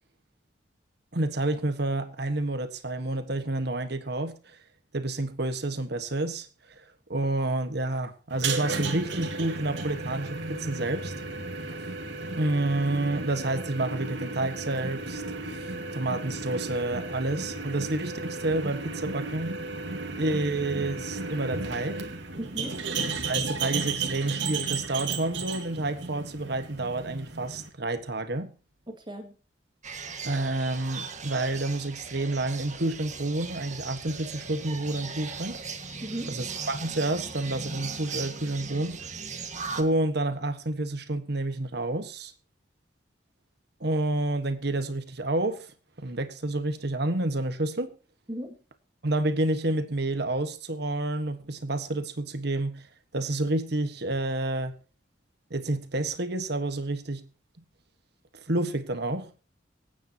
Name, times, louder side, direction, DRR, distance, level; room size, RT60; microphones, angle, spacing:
voice 1, 1.1-4.6 4.9-6.8 7.1-11.1 12.4-15.2 15.5-19.6 20.2-22.1 23.1-28.5 30.2-35.6 36.3-39.0 39.8-42.3 43.8-48.0 49.0-52.9 53.1-54.7 55.5-57.2 58.5-59.3, right 2 dB, 65° right, 1.5 m, -29 dB
sound 1, 8.3-27.7, right 3 dB, 80° right, 2.2 m, -34 dB
voice 2, 22.4-22.7 28.9-29.3 36.0-36.4 48.3-48.5, right 1 dB, 25° right, 2.2 m, -36 dB
sound 2, 29.8-39.8, right 5 dB, 40° right, 1.8 m, -38 dB
25.0 x 9.3 x 3.0 m
head